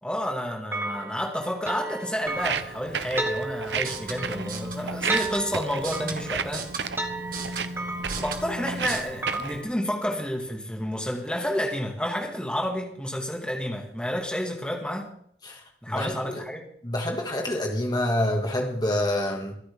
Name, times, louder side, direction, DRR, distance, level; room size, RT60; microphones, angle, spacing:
voice 1, 0.0-6.7 7.4-7.6 8.2-15.1 15.8-16.7, equal, 5° left, 1 dB, 2.1 m, -30 dB
sound 1, 0.7-9.7, right 2 dB, 15° right, 1.4 m, -34 dB
Walk footsteps, 2.3-9.6, right 6 dB, 75° right, 0.8 m, -34 dB
sound 2, 3.7-9.0, right 2 dB, 50° right, 1.9 m, -36 dB
voice 2, 15.4-16.4 16.8-19.5, left 1 dB, 25° left, 1 dB, 2.3 m, -27 dB
25.0 x 9.0 x 3.7 m, 0.63 s
head